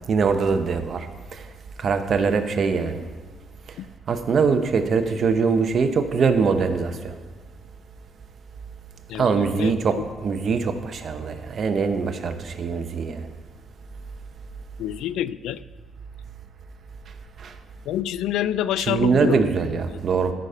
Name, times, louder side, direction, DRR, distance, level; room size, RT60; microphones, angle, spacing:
voice 1, 0.1-1.1 1.3-1.4 1.8-3.0 4.1-7.2 9.2-13.3 17.4-17.5 18.9-20.3, right 5 dB, 55° right, 7 dB, 0.8 m, -22 dB
voice 2, 9.1-9.7 14.8-15.6 17.9-19.4 19.9-20.0, left 12 dB, 90° left, 16 dB, 0.3 m, -27 dB
13.5 x 5.0 x 5.5 m, 1.4 s
cardioid pair, 90°, 0 cm